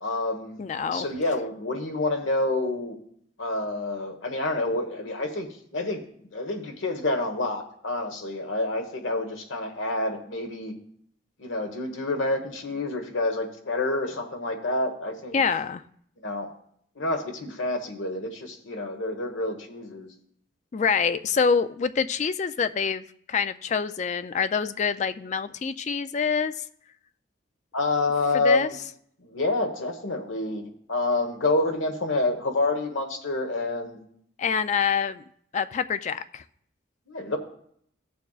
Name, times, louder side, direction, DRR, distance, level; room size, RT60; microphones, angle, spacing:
voice 1, 0.0-0.6 0.9-3.0 3.4-10.7 11.4-15.4 16.2-16.5 17.0-20.1 27.7-28.8 29.2-34.0 37.1-37.4, left 2 dB, 80° left, 5 dB, 1.3 m, -28 dB
voice 2, 0.6-1.1 15.3-15.8 20.7-26.6 28.4-28.7 34.4-35.2 35.5-36.4, left 6 dB, 35° left, 12 dB, 0.3 m, -26 dB
16.0 x 6.8 x 2.4 m, 0.67 s
head